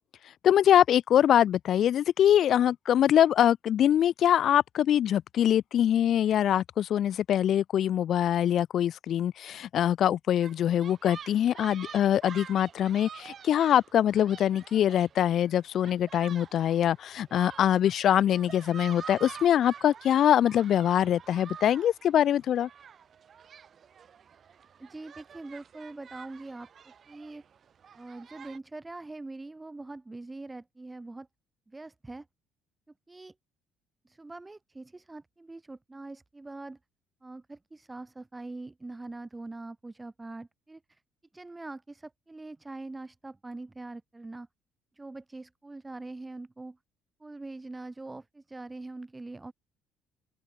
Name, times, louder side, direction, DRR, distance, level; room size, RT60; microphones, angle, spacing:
voice 1, 0.4-22.7, left 10 dB, 50° left, 1.4 m, -24 dB
sound 1, 10.4-28.6, right 7 dB, 35° right, 5.8 m, -48 dB
voice 2, 24.8-27.4 27.9-31.3 31.7-32.3 33.1-33.3 34.0-36.8 37.2-41.0 41.3-44.5 44.9-46.8 47.2-49.5, right 2 dB, 10° right, 3.5 m, -43 dB
open air
cardioid pair, 150°, 0 cm